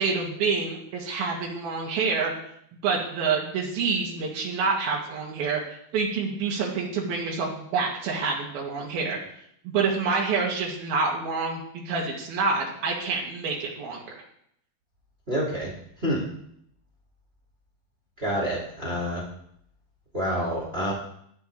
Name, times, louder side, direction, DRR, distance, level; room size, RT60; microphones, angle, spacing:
voice 1, 0.0-2.3 2.8-9.2 9.7-14.0, right 4 dB, 90° right, -3 dB, 4.0 m, -27 dB
voice 2, 15.3-15.7 16.0-16.3 18.2-19.2 20.1-20.9, equal, 20° right, -2 dB, 2.6 m, -27 dB
17.0 x 12.0 x 3.5 m, 0.70 s
omnidirectional pair, 4.1 m